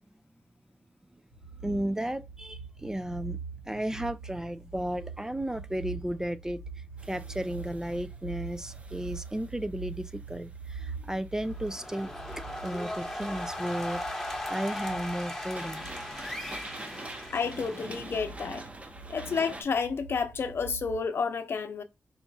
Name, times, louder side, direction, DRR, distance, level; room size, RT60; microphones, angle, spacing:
Deep vibrating Ambience, 1.3-21.0, right 5 dB, 65° right, 1.1 m, -44 dB
voice 1, 1.6-3.4 3.7-15.9, right 1 dB, 10° right, 0.3 m, -34 dB
sound 1, 7.0-19.6, right 2 dB, 30° right, 0.8 m, -47 dB
sound 2, 11.4-18.3, left 1 dB, 5° left, 1.1 m, -38 dB
voice 2, 17.3-18.7 19.1-21.8, left 5 dB, 65° left, 0.7 m, -30 dB
4.6 x 2.4 x 4.0 m
wide cardioid pair, 95°, 4 cm